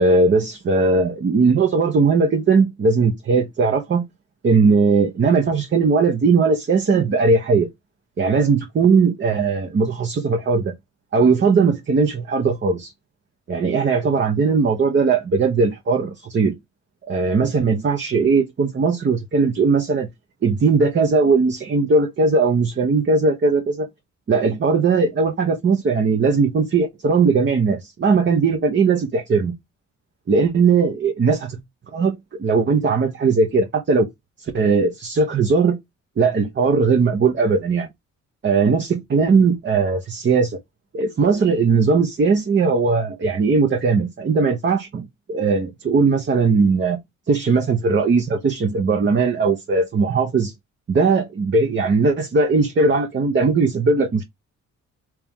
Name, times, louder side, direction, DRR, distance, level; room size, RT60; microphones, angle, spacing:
voice 1, 0.0-4.0 4.4-7.7 8.2-10.7 11.1-12.9 13.5-16.6 17.1-20.1 20.4-23.9 24.3-29.5 30.3-31.6 31.9-34.1 34.4-35.8 36.2-37.9 38.4-40.6 40.9-47.0 47.3-50.5 50.9-54.2, right 4 dB, 40° right, 0.9 m, -18 dB
3.4 x 3.0 x 3.4 m
cardioid pair, 90°, 30 cm